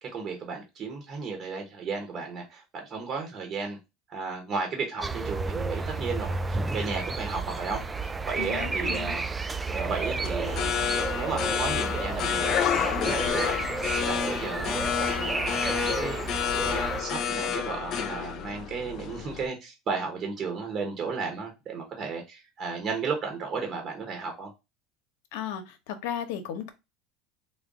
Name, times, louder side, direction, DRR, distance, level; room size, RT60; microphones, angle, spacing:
voice 1, 0.0-3.8 4.1-9.2 9.7-10.7 11.1-13.6 14.0-24.5, right 4 dB, 40° right, 1.0 m, -34 dB
sound 1, 5.0-17.0, right 3 dB, 15° right, 0.3 m, -32 dB
voice 2, 8.4-9.2 25.3-26.7, left 9 dB, 75° left, 0.9 m, -35 dB
sound 2, 9.9-19.5, left 8 dB, 45° left, 0.5 m, -29 dB
3.9 x 2.2 x 3.6 m
supercardioid pair, 125°, 0 cm